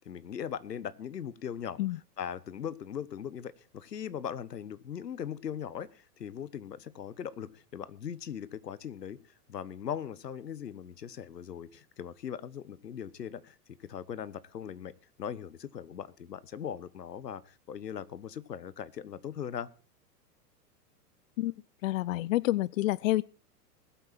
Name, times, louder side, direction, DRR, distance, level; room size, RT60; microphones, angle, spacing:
voice 1, 0.0-1.8 2.2-9.2 9.5-13.5 13.8-14.9 15.2-19.7, left 8 dB, 85° left, 18 dB, 1.2 m, -39 dB
voice 2, 21.8-23.2, left 16 dB, 55° left, 24 dB, 0.5 m, -28 dB
20.5 x 8.5 x 4.2 m, 0.36 s
hypercardioid pair, 110°, 47 cm